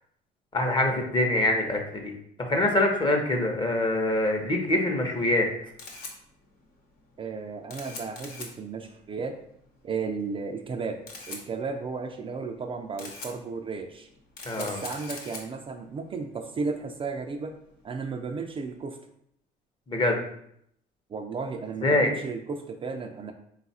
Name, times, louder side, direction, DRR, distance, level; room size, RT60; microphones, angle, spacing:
voice 1, 0.5-2.1 2.4-5.5 14.4-14.8 19.9-20.2 21.8-22.1, left 1 dB, 30° left, 2 dB, 0.8 m, -24 dB
Camera, 5.4-18.8, left 3 dB, 65° left, 1.0 m, -45 dB
voice 2, 7.2-9.3 9.8-11.0 11.3-14.1 14.6-17.5 17.8-19.0 21.1-23.3, right 4 dB, 30° right, 4 dB, 0.4 m, -34 dB
3.9 x 2.4 x 4.1 m, 0.71 s
cardioid pair, 110°, 17 cm